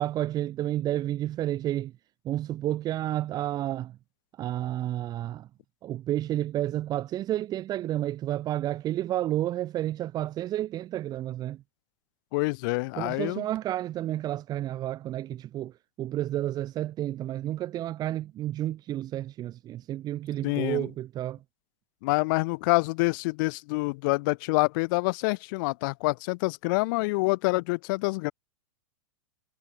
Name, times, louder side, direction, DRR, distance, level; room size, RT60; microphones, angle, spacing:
voice 1, 0.0-1.9 2.2-4.0 4.4-5.5 5.8-11.6 13.0-21.4, right 13 dB, 25° right, 3.6 m, -31 dB
voice 2, 12.3-13.4 20.4-20.9 22.0-28.3, left 26 dB, 40° left, 0.9 m, -27 dB
supercardioid pair, 160°, 17 cm